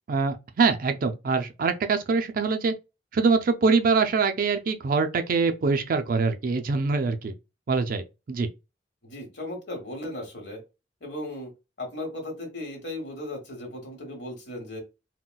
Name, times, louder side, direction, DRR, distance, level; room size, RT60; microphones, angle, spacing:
voice 1, 0.1-2.7 3.1-7.3 7.7-8.5, right 4 dB, 50° right, 0.4 m, -24 dB
voice 2, 9.0-10.6 11.0-11.5 11.8-14.8, left 1 dB, 65° left, 1.2 m, -36 dB
3.8 x 2.2 x 2.2 m
head